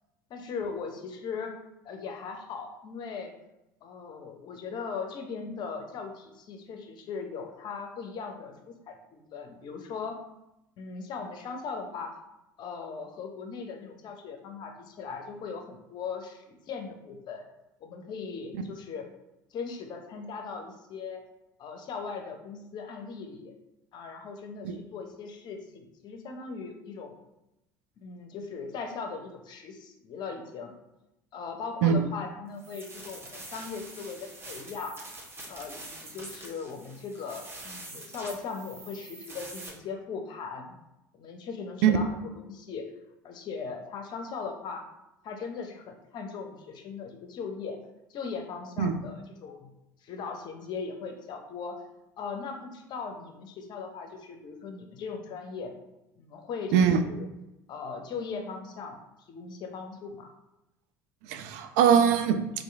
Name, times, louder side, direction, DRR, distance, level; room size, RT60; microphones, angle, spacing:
voice 1, 0.3-1.6 1.8-3.3 3.8-10.2 10.8-12.1 12.6-17.4 17.8-19.1 19.5-21.2 21.6-23.5 23.9-27.1 28.0-30.7 31.3-35.0 35.5-40.7 41.1-42.2 42.5-42.9 43.2-44.8 45.2-47.8 48.1-49.7 50.0-51.8 52.2-55.7 56.2-57.3 57.7-59.0 59.3-60.3, left 5 dB, 50° left, 5 dB, 0.6 m, -39 dB
sound 1, 32.6-39.7, right 2 dB, 25° right, 1.0 m, -45 dB
voice 2, 56.7-57.0 61.2-62.4, right 8 dB, 70° right, 8 dB, 0.4 m, -22 dB
2.9 x 2.5 x 3.4 m, 0.91 s
hypercardioid pair, 70°, 10 cm